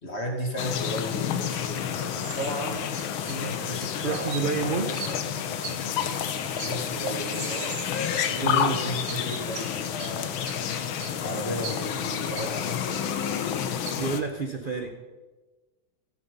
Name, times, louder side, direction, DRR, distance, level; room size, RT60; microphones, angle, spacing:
voice 1, 0.0-2.8 3.2-6.0 6.6-7.8 8.3-10.3 11.2-13.4, equal, 35° left, 1 dB, 2.4 m, -35 dB
sound 1, 0.6-14.2, left 8 dB, 90° left, 1.8 m, -30 dB
sound 2, 2.2-2.6 2.9-3.4 3.8-4.5 4.9-5.2 5.6-6.0 6.6-7.0 7.2-8.7 9.1-10.1 10.4-10.6 11.0-11.2 11.6-12.5 12.9-13.5 13.8-13.9, right 6 dB, 80° right, 2.2 m, -40 dB
voice 2, 4.0-4.9 8.3-8.8 14.0-14.9, right 4 dB, 40° right, 4 dB, 0.7 m, -29 dB
14.5 x 13.0 x 5.4 m, 1.2 s
omnidirectional pair, 2.1 m